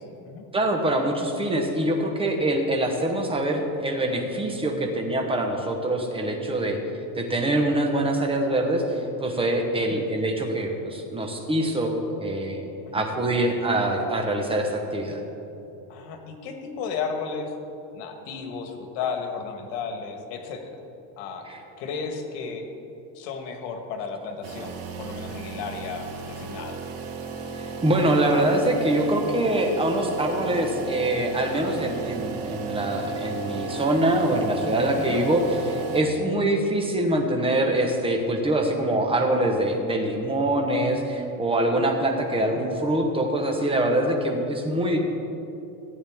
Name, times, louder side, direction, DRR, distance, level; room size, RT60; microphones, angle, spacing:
voice 1, 0.0-0.4 4.7-4.9 9.8-10.0 12.9-13.0 15.9-17.5 17.9-20.8 21.2-21.5 21.8-22.7 23.1-26.8 35.0-35.2 42.3-42.6, left 5 dB, 90° left, 5 dB, 1.5 m, -34 dB
voice 2, 0.5-6.8 7.1-12.6 12.9-15.2 21.5-21.6 27.5-45.0, right 1 dB, 10° right, 2 dB, 1.0 m, -24 dB
sound 1, 24.4-36.0, right 3 dB, 60° right, 1.5 m, -34 dB
14.5 x 9.0 x 3.6 m, 2.9 s
cardioid pair, 140°, 46 cm